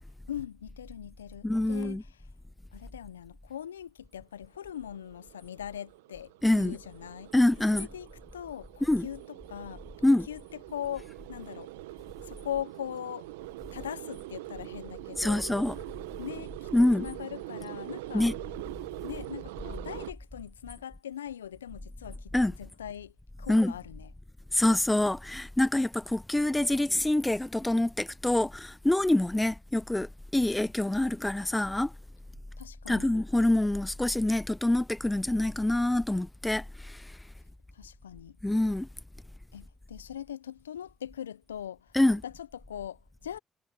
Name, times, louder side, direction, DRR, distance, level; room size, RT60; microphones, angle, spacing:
voice 1, 0.3-2.0 2.7-7.3 7.7-9.8 10.3-10.4 10.7-11.7 12.3-13.3 13.7-15.5 16.2-16.7 17.0-18.3 19.0-23.1 23.4-24.1 32.6-33.1 37.7-38.4 39.5-43.4, left 10 dB, 90° left, 0.7 m, -41 dB
voice 2, 1.4-2.0 6.4-6.8 7.3-7.9 8.8-9.1 10.0-10.3 15.2-15.8 16.7-17.1 18.1-18.4 22.3-22.5 23.5-23.8 24.5-31.9 32.9-37.0 38.4-38.9 41.9-42.2, left 1 dB, 15° left, 0.3 m, -26 dB
sound 1, 4.6-20.1, right 20 dB, 80° right, 1.2 m, -43 dB
hypercardioid pair, 40°, 0 cm